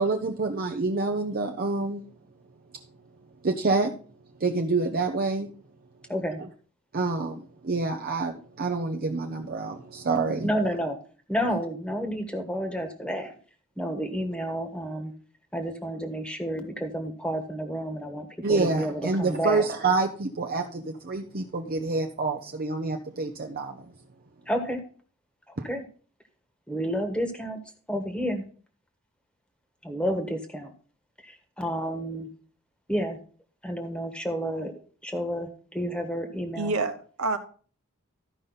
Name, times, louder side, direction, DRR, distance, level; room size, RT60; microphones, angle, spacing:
voice 1, 0.0-2.0 3.4-3.9 4.4-5.5 6.4-6.5 6.9-10.5 18.4-23.9 25.6-25.7, right 3 dB, 45° right, 0.7 m, -27 dB
voice 2, 6.1-6.4 10.4-11.0 11.3-13.3 13.8-15.1 15.5-19.6 24.5-24.8 25.5-25.8 26.7-27.6 27.9-28.4 29.8-30.7 31.2-32.3 32.9-33.2 33.6-34.7 35.0-36.7, equal, 5° left, 1.3 m, -30 dB
voice 3, 36.6-37.4, right 3 dB, 85° right, 1.1 m, -27 dB
13.0 x 5.3 x 4.0 m
head